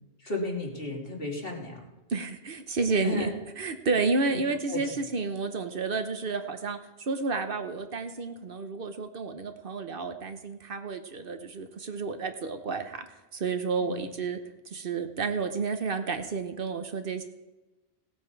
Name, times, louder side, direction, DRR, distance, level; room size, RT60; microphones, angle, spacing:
voice 1, 0.2-1.9 3.0-3.3 4.3-4.4 4.7-4.8 13.8-14.1, left 2 dB, 65° left, -2 dB, 2.6 m, -33 dB
voice 2, 2.1-3.3 3.6-6.8 7.1-13.1 13.3-14.4 14.7-17.2, right 4 dB, 60° right, 8 dB, 1.1 m, -31 dB
17.5 x 8.4 x 4.6 m, 1.1 s
omnidirectional pair, 1.1 m